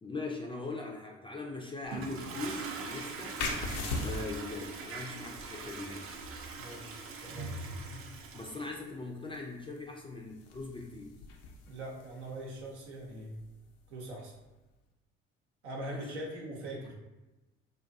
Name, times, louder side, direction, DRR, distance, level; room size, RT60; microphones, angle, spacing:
voice 1, 0.0-3.4 4.0-6.2 8.3-11.2 15.9-16.1, left 3 dB, 15° left, -1 dB, 0.4 m, -41 dB
Toilet flush, 1.9-8.7, right 4 dB, 40° right, 0.5 m, -42 dB
sound 1, 3.4-14.7, left 3 dB, 70° left, 0.5 m, -43 dB
voice 2, 6.6-7.6 11.7-13.4 13.9-14.3 15.6-16.9, right 1 dB, 85° right, -2 dB, 0.7 m, -42 dB
2.5 x 2.4 x 2.5 m, 1.1 s
hypercardioid pair, 55°, 33 cm